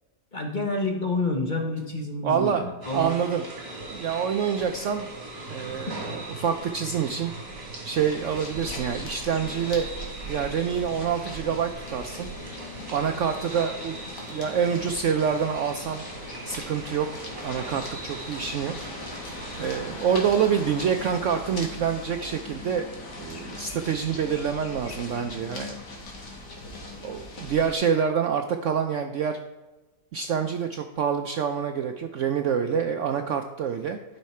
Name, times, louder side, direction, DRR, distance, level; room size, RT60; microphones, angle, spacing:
voice 1, 0.3-3.1 5.8-6.0, left 2 dB, 35° left, 2 dB, 0.9 m, -29 dB
voice 2, 2.2-2.7 2.9-3.4 3.9-5.1 5.5-7.3 7.8-9.9 10.3-12.3 12.9-14.0 14.3-16.0 16.4-18.7 19.6-22.9 23.2-26.0 27.0-29.4 30.1-34.0, right 7 dB, 70° right, 6 dB, 0.7 m, -26 dB
sound 1, 2.8-19.7, right 2 dB, 35° right, 2.4 m, -39 dB
sound 2, 8.0-27.7, left 2 dB, 85° left, 2.3 m, -40 dB
12.5 x 5.6 x 4.3 m, 1.2 s
omnidirectional pair, 1.8 m